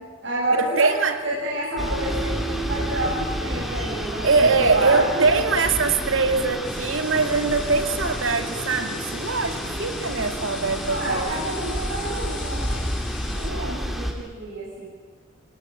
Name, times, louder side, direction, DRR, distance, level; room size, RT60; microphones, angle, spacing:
voice 1, 0.0-1.0 1.2-5.4 6.0-6.1 9.5-9.9 10.9-14.9, right 1 dB, 65° right, -5 dB, 7.5 m, -29 dB
voice 2, 0.6-1.2 4.2-11.3 13.5-13.8, right 4 dB, 80° right, 7 dB, 2.5 m, -22 dB
sound 1, 1.7-10.3, right 5 dB, 30° right, 5.5 m, -40 dB
sound 2, 1.8-14.1, equal, ahead, 3.3 m, -30 dB
sound 3, 6.6-13.5, left 4 dB, 60° left, 6.0 m, -39 dB
26.0 x 19.0 x 9.9 m, 1.4 s
head